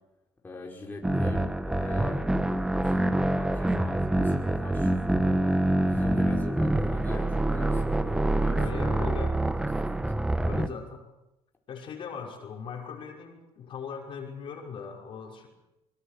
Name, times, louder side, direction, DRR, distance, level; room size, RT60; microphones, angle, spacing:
voice 1, 0.4-2.2 2.8-5.4 5.9-9.0 9.4-9.7, left 2 dB, 20° left, -1 dB, 5.1 m, -40 dB
sound 1, 1.0-10.7, right 1 dB, 5° right, 1.3 m, -26 dB
voice 2, 8.5-9.4 10.4-11.0 11.7-15.5, left 6 dB, 55° left, 1 dB, 5.8 m, -39 dB
24.5 x 23.0 x 6.8 m, 0.96 s
cardioid pair, 105°, 10 cm